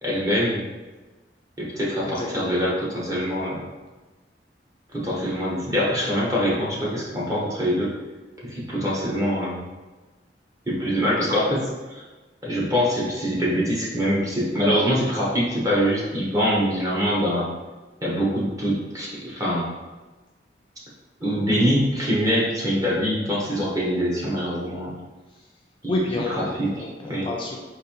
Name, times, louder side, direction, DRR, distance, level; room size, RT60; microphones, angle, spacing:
voice 1, 0.0-0.6 1.6-3.6 4.9-7.9 8.4-9.7 10.7-12.0 12.4-17.5 18.0-19.7 21.2-25.0 25.8-25.9 26.8-27.3, equal, 20° right, -6 dB, 0.9 m, -24 dB
voice 2, 2.0-2.5 25.3-25.5 25.9-27.6, left 2 dB, 30° left, -2 dB, 0.3 m, -30 dB
3.9 x 2.5 x 2.9 m, 1.2 s
head